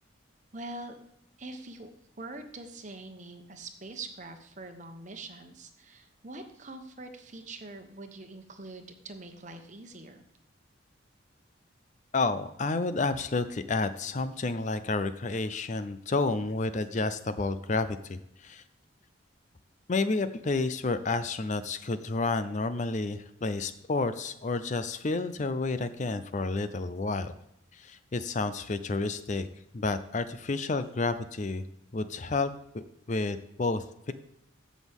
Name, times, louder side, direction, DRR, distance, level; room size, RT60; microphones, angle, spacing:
voice 1, 0.5-1.0 1.4-1.9 2.2-10.2, right 2 dB, 35° right, 6 dB, 1.1 m, -44 dB
voice 2, 12.1-18.6 19.9-27.3 27.7-29.5 29.7-31.6 31.9-34.1, left 3 dB, 35° left, 12 dB, 0.5 m, -30 dB
15.0 x 6.2 x 3.6 m, 0.79 s
head